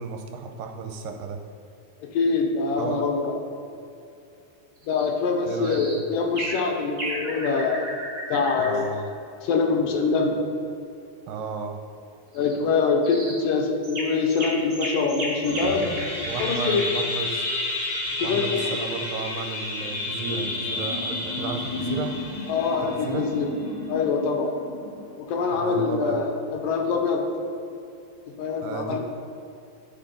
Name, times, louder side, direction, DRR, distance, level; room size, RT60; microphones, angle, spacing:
voice 1, 0.0-1.4 2.8-3.1 5.5-6.1 8.6-9.1 11.3-11.8 16.3-17.5 18.2-22.1 22.8-23.3 25.5-26.2 28.6-29.0, right 5 dB, 75° right, 4 dB, 2.2 m, -33 dB
voice 2, 2.0-3.4 4.9-7.9 8.3-8.9 9.4-10.4 12.3-15.8 16.2-16.8 18.2-18.8 22.5-23.5 23.9-24.5 25.2-27.2 28.4-29.0, left 4 dB, 75° left, 2 dB, 2.4 m, -24 dB
sound 1, 4.8-5.1 5.6-6.0 6.4-6.6 7.0-8.8 12.3-12.5 13.0-13.4 13.8-16.9, right 1 dB, 35° right, 1.5 m, -34 dB
sound 2, 15.4-25.1, left 2 dB, 45° left, 1.6 m, -31 dB
11.0 x 5.1 x 5.2 m, 2.7 s
omnidirectional pair, 4.2 m